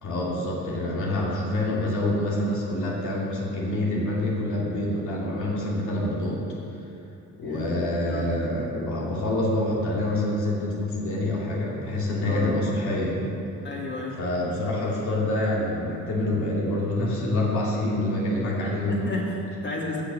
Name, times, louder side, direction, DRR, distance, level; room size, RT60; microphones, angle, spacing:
voice 1, 0.0-6.4 7.4-13.2 14.2-19.1, left 1 dB, 75° left, -5 dB, 2.8 m, -26 dB
voice 2, 7.4-7.7 8.0-8.3 12.2-12.5 13.6-14.2 18.6-20.0, left 2 dB, 35° left, -2 dB, 2.6 m, -32 dB
17.0 x 6.0 x 6.4 m, 2.7 s
cardioid pair, 90°, 30 cm